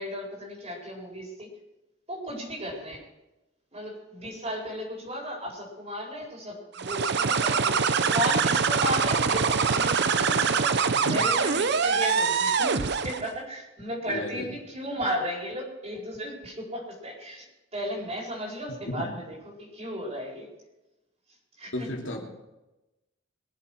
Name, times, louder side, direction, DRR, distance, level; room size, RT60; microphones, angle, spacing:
voice 1, 0.0-1.6 2.1-3.0 3.7-17.5 17.7-20.5 21.6-21.9, equal, 30° right, -1 dB, 4.6 m, -35 dB
sound 1, 6.8-13.3, right 5 dB, 55° right, 0.7 m, -24 dB
voice 2, 14.1-14.5 18.8-19.1 21.7-22.2, left 1 dB, 70° left, 0 dB, 2.8 m, -33 dB
22.5 x 7.5 x 6.3 m, 0.98 s
head